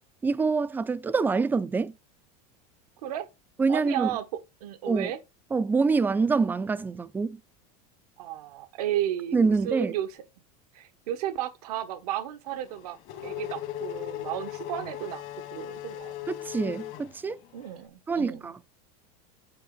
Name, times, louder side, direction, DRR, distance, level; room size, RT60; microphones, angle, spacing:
voice 1, 0.2-1.9 3.6-4.1 4.9-5.1 5.5-7.4 9.3-9.9 16.3-17.4 18.1-18.6, right 4 dB, 10° right, 0.4 m, -25 dB
voice 2, 3.7-4.2 4.6-5.2 8.2-10.2 10.7-13.0 13.2-15.2 15.5-16.1 17.5-18.5, right 12 dB, 90° right, 1.3 m, -33 dB
Race car auto racing / Accelerating revving vroom, 12.5-17.8, left 13 dB, 60° left, 1.9 m, -38 dB
8.6 x 5.1 x 3.8 m
supercardioid pair, 140°, 19 cm